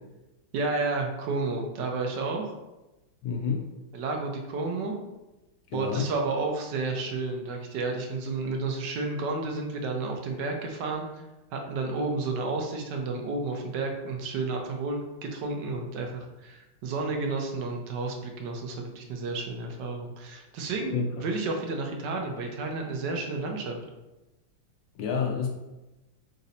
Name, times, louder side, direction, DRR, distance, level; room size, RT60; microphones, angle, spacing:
voice 1, 0.5-2.5 3.9-5.0 5.7-11.2 11.5-23.8, right 3 dB, 70° right, 2 dB, 1.1 m, -31 dB
voice 2, 3.2-3.6 5.7-6.1 20.9-21.1 24.9-25.5, left 6 dB, 70° left, 1 dB, 1.2 m, -28 dB
4.0 x 2.6 x 4.0 m, 1.0 s
omnidirectional pair, 2.3 m